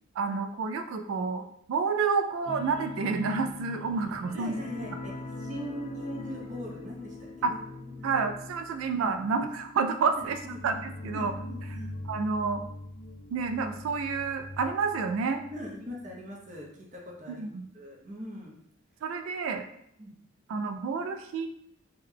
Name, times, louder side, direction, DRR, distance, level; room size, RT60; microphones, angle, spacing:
voice 1, 0.2-4.5 7.4-7.5 8.0-10.4 10.6-11.3 12.1-12.6 13.3-15.4 17.3-17.7 19.0-19.6 20.5-21.5, right 4 dB, 85° right, 7 dB, 0.3 m, -29 dB
sound 1, 2.5-15.7 16.0-16.2 16.6-16.7, left 2 dB, 30° left, 0.3 m, -42 dB
voice 2, 4.3-5.1 5.4-7.6 7.9-8.1 10.2-10.6 11.1-11.9 15.5-17.5 17.7-18.6 20.0-20.1, equal, 40° right, -2 dB, 0.7 m, -41 dB
3.7 x 2.2 x 3.3 m, 0.72 s
head